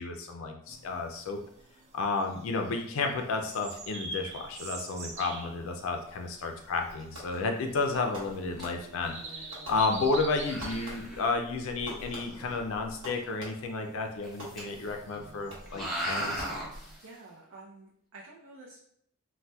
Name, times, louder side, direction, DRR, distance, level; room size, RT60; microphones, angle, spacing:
voice 1, 0.0-1.4 1.9-16.5, left 3 dB, 70° left, 4 dB, 0.3 m, -32 dB
sound 1, 0.7-17.0, right 3 dB, 35° right, 0.3 m, -46 dB
sound 2, 6.8-7.0 7.3-7.4 7.9-8.2 8.6-8.7 8.9-9.0 9.2-9.3 9.8-10.0 10.4-11.3 11.9-12.6 14.2-14.9 15.1-15.2 15.7-17.0, right 1 dB, ahead, 0.7 m, -37 dB
Fireworks, 7.1-7.6 8.1-9.1 9.5-10.3 10.6-11.3 11.9-13.8 14.4-15.0 15.5-15.9 16.4-17.1, equal, 60° right, 1.2 m, -46 dB
voice 2, 17.0-18.8, right 2 dB, 85° right, -3 dB, 0.5 m, -50 dB
4.0 x 2.1 x 2.2 m, 0.69 s
head